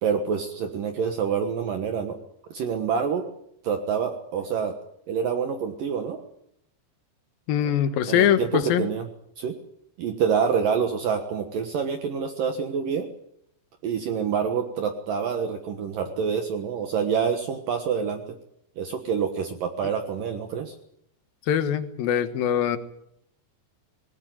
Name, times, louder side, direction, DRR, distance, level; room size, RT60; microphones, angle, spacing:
voice 1, 0.0-2.2 2.5-3.2 3.6-4.7 5.1-6.2 8.1-9.0 9.4-9.6 10.0-13.1 13.8-18.2 18.8-20.7, right 6 dB, 60° right, 6 dB, 2.6 m, -27 dB
voice 2, 7.5-8.9 21.5-22.8, left 10 dB, 65° left, 11 dB, 2.9 m, -23 dB
20.5 x 18.0 x 9.3 m, 0.74 s
omnidirectional pair, 5.1 m